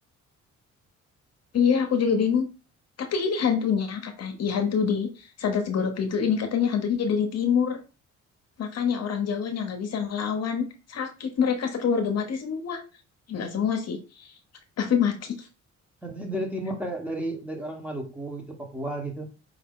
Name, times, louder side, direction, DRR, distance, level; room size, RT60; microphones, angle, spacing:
voice 1, 1.5-2.5 3.0-7.8 8.6-12.8 13.3-14.3 14.8-15.5, left 6 dB, 55° left, 0.9 m, -26 dB
voice 2, 16.0-19.3, right 1 dB, 5° right, 1.2 m, -33 dB
5.1 x 2.8 x 3.6 m
cardioid pair, 90°, 30 cm